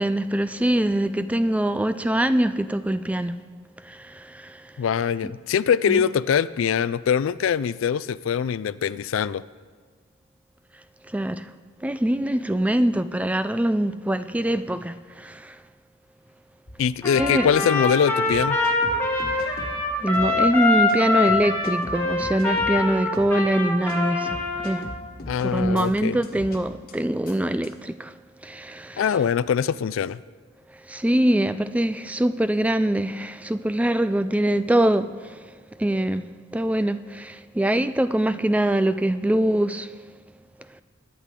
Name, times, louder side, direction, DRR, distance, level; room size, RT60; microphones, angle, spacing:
voice 1, 0.0-3.4 3.8-4.7 5.9-6.1 11.0-11.5 11.8-15.6 17.2-17.5 19.2-19.6 20.0-24.9 25.4-29.0 30.9-35.5 35.8-39.9 40.7-40.8, right 1 dB, 5° right, 0.3 m, -24 dB
voice 2, 4.8-9.4 16.8-18.6 25.3-26.2 29.0-30.2, left 7 dB, 70° left, 0.3 m, -23 dB
sound 1, 16.7-16.8 17.1-17.3 17.9-18.0 18.3-19.8 20.1-20.3 20.9-21.0 21.3-22.8 23.1-23.3 23.9-24.0 24.3-25.9 26.2-26.6 26.9-27.0 27.3-27.4 27.6-27.7, left 1 dB, 45° left, 1.4 m, -38 dB
Trumpet, 17.0-24.8, left 3 dB, 10° left, 1.8 m, -24 dB
21.5 x 10.0 x 3.7 m
head